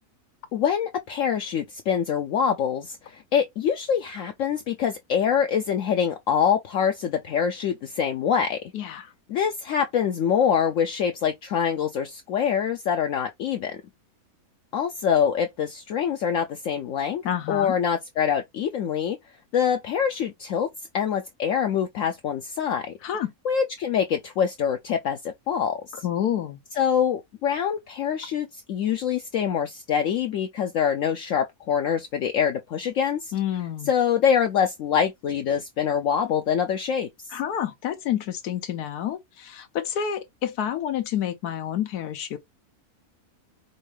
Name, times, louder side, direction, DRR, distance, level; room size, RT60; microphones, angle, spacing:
voice 1, 0.5-8.6 9.3-13.8 14.7-17.2 17.5-19.2 19.5-20.7 20.9-23.0 23.4-26.0 26.7-33.3 33.9-37.3, left 8 dB, 70° left, 0.8 m, -25 dB
voice 2, 8.7-9.1 17.2-17.8 23.0-23.3 26.0-26.6 33.3-33.9 37.3-42.4, left 10 dB, 90° left, 1.2 m, -29 dB
5.3 x 2.4 x 3.2 m
omnidirectional pair, 1.6 m